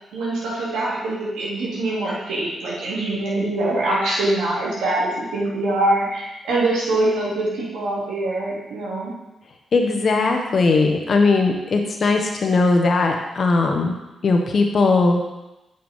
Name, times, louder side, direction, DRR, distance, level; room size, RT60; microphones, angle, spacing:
voice 1, 0.1-9.1, right 2 dB, 80° right, -6 dB, 2.7 m, -23 dB
voice 2, 9.7-13.9 14.2-15.2, left 3 dB, 55° left, 3 dB, 1.3 m, -19 dB
8.0 x 5.9 x 3.7 m, 0.99 s
supercardioid pair, 50°, 0 cm